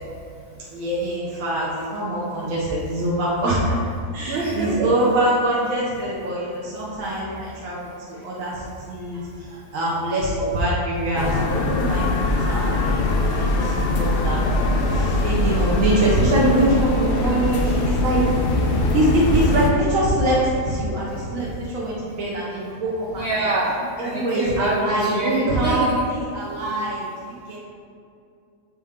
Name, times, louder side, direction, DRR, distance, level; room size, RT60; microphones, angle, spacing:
voice 1, 0.7-3.8 4.1-7.8 8.1-9.2 9.7-13.0 13.3-14.4 14.9-18.2 18.9-23.5 24.0-27.6, right 1 dB, 60° right, -6 dB, 1.3 m, -24 dB
voice 2, 4.3-5.0 9.1-9.2 23.1-26.1, right 2 dB, 75° right, -2 dB, 0.5 m, -25 dB
sound 1, 11.1-19.7, left 2 dB, 70° left, 0.5 m, -22 dB
6.3 x 4.3 x 3.6 m, 2.4 s
omnidirectional pair, 1.7 m